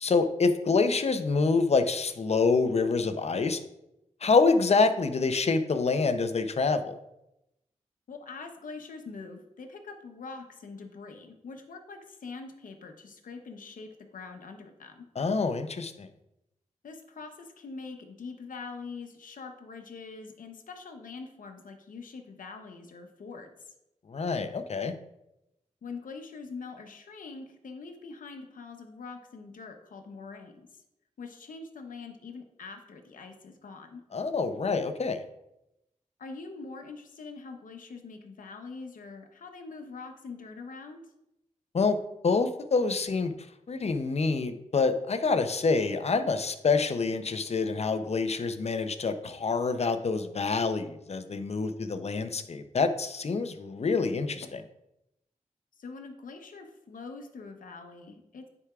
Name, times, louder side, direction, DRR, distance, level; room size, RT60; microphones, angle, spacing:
voice 1, 0.0-3.6 4.2-6.9 15.2-16.1 24.1-24.9 34.1-35.2 41.7-42.0 42.2-43.3 43.7-54.6, left 4 dB, 50° left, 9 dB, 0.6 m, -26 dB
voice 2, 8.1-15.0 16.8-23.7 25.8-30.8 31.2-34.0 36.2-41.0 55.8-58.5, left 4 dB, 85° left, 5 dB, 0.9 m, -44 dB
9.7 x 4.7 x 2.4 m, 0.87 s
cardioid pair, 60°, 13 cm